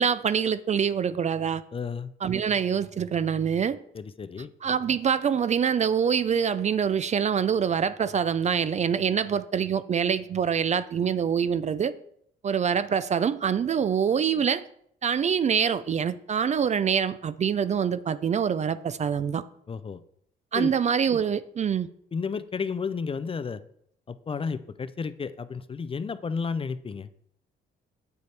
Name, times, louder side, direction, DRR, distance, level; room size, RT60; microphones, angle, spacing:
voice 1, 0.0-1.6 2.2-3.8 4.6-11.9 12.4-14.6 15.0-19.4 20.5-21.9, right 7 dB, 35° right, 0.4 m, -25 dB
voice 2, 1.7-2.1 3.9-4.5 19.7-20.0 20.5-20.7 22.1-23.6 24.1-27.1, left 5 dB, 30° left, 0.4 m, -32 dB
8.0 x 6.8 x 3.3 m
cardioid pair, 90°, 20 cm